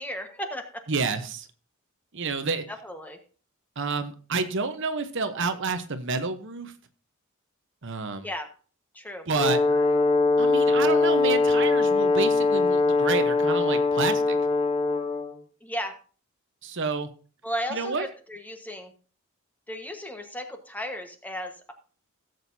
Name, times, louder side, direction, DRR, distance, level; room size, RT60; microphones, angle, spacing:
voice 1, 0.0-0.8 2.7-3.2 8.2-8.5 8.9-9.9 15.6-15.9 17.4-18.9 19.7-21.7, equal, 10° left, 5 dB, 1.3 m, -35 dB
voice 2, 0.9-1.5 2.1-2.6 3.8-6.7 7.8-8.3 9.3-9.6 10.4-14.4 16.6-17.1 17.7-18.1, right 4 dB, 60° right, 9 dB, 1.0 m, -29 dB
Brass instrument, 9.3-15.3, left 3 dB, 25° left, 1.1 m, -22 dB
17.0 x 7.9 x 2.7 m, 0.38 s
head